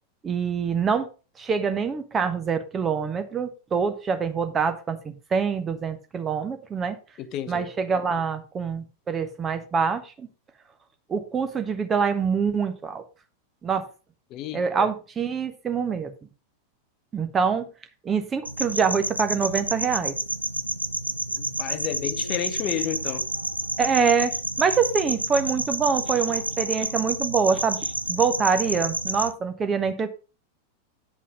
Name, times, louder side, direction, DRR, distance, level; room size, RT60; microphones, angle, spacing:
voice 1, 0.2-1.1 1.4-7.0 7.5-10.3 11.1-13.0 13.6-13.9 14.5-16.1 17.1-17.7 18.0-20.1 23.8-24.3 24.6-30.1, right 6 dB, 20° right, 1.2 m, -25 dB
voice 2, 7.2-7.7 14.3-14.9 21.4-23.3, left 11 dB, 35° left, 0.7 m, -32 dB
sound 1, 18.5-29.3, right 1 dB, 85° right, 0.5 m, -29 dB
8.9 x 5.5 x 5.2 m
figure-of-eight pair, 90°, 0 cm